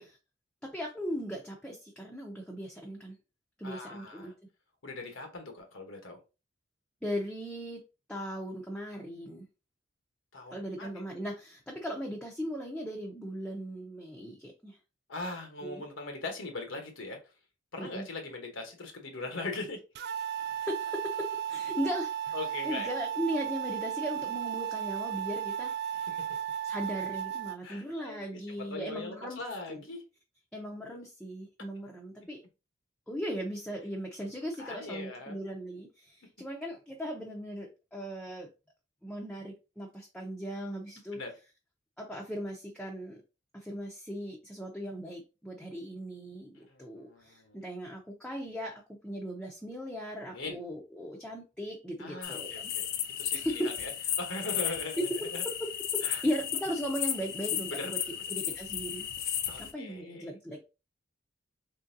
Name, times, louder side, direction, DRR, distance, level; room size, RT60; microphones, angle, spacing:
voice 1, 0.6-3.2 3.6-4.3 7.0-7.8 8.1-9.5 10.5-14.8 15.6-15.8 17.8-18.1 20.4-22.3 22.6-25.7 26.6-29.4 29.7-29.8 30.5-32.4 33.1-38.5 39.0-41.2 42.0-43.2 43.5-52.7 53.3-53.7 55.4-55.5 55.9-58.0 58.3-60.6, equal, 5° left, -2 dB, 0.6 m, -38 dB
voice 2, 3.6-4.3 4.8-6.2 10.3-11.0 15.1-17.2 17.7-19.8 22.3-23.0 25.9-26.3 27.6-30.0 34.6-35.4 41.1-41.3 46.5-47.6 50.2-50.6 52.0-52.9 53.2-53.9 54.2-55.4 56.0-56.2 57.7-58.2 59.5-60.3, left 2 dB, 80° left, 4 dB, 1.1 m, -40 dB
sound 1, 19.9-27.6, right 9 dB, 55° right, 0.3 m, -35 dB
sound 2, 52.2-59.7, left 10 dB, 50° left, 0.5 m, -34 dB
3.8 x 3.3 x 2.6 m, 0.29 s
head